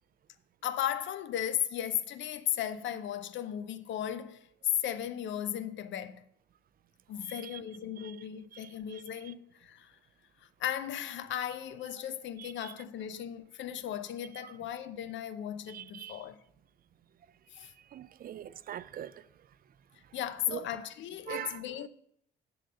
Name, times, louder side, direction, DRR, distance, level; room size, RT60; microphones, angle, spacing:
voice 1, 0.6-4.5 4.8-6.3 7.1-9.9 10.6-16.4 17.5-17.7 20.1-21.9, left 10 dB, 70° left, 0.6 m, -36 dB
voice 2, 7.2-7.6 8.0-8.2 8.5-9.0 12.4-12.7 14.4-14.5 15.7-16.2 17.6-19.3 20.5-20.6 21.3-21.6, right 10 dB, 50° right, 0.4 m, -43 dB
7.5 x 3.9 x 6.7 m
cardioid pair, 90°, 20 cm